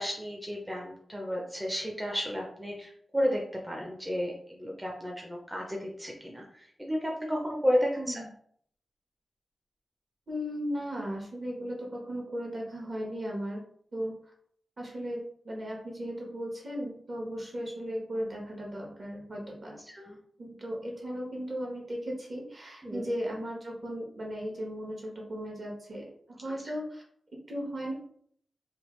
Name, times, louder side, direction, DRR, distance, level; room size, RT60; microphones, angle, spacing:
voice 1, 0.0-8.2 19.9-20.2 22.8-23.1, equal, 10° right, -1 dB, 0.5 m, -32 dB
voice 2, 7.9-8.3 10.3-13.6 13.9-14.1 14.8-19.8 20.4-27.0 27.5-27.9, equal, 45° right, -1 dB, 1.0 m, -36 dB
3.2 x 2.4 x 3.1 m, 0.63 s
wide cardioid pair, 110°, 0 cm